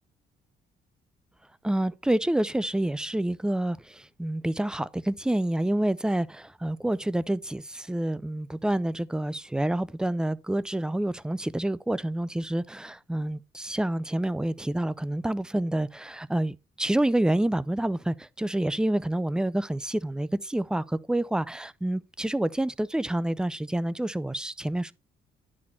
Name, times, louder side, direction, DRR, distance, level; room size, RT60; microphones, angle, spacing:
voice 1, 1.6-24.9, right 1 dB, 5° right, 0.3 m, -28 dB
9.9 x 4.2 x 4.2 m
cardioid pair, 90°, 20 cm